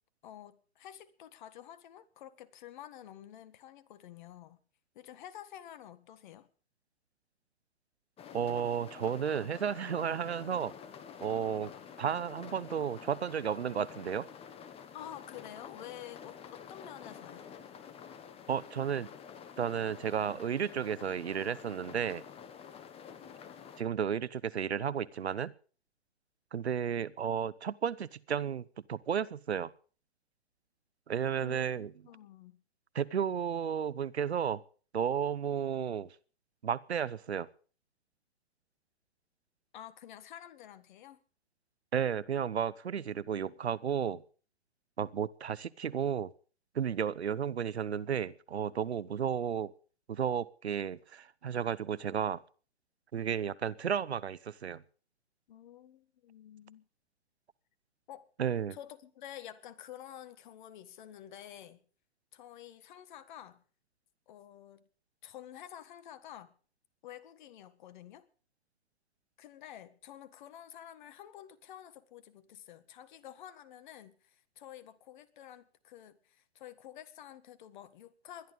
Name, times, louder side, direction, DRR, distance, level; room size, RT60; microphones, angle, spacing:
voice 1, 0.2-4.6 5.0-6.5 14.9-17.5 31.4-32.6 39.7-41.2 55.5-56.9 58.1-58.3 58.7-61.8 62.3-63.6 64.3-64.8 65.2-66.5 67.0-68.3 69.4-78.5, left 11 dB, 45° left, 1.7 m, -50 dB
sound 1, 8.2-23.8, left 7 dB, 15° left, 1.6 m, -49 dB
voice 2, 8.3-10.7 11.2-11.7 12.0-14.3 18.5-19.1 19.6-22.2 23.8-25.5 26.5-29.7 31.1-31.9 32.9-34.6 34.9-36.1 36.6-37.5 41.9-44.2 45.0-46.3 46.7-49.7 50.1-52.4 53.1-54.8 58.4-58.8, right 8 dB, 75° right, 1.0 m, -33 dB
21.0 x 11.5 x 5.3 m
figure-of-eight pair, 120°, 33 cm